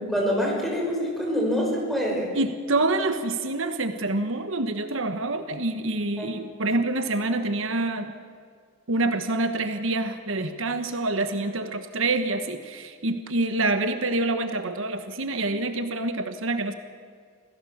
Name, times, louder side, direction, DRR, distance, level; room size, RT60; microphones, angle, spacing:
voice 1, 0.0-2.3 6.2-6.3, equal, ahead, -2 dB, 5.9 m, -26 dB
voice 2, 2.3-8.1 8.9-16.7, right 2 dB, 70° right, 8 dB, 1.3 m, -26 dB
26.5 x 17.5 x 7.2 m, 2.1 s
head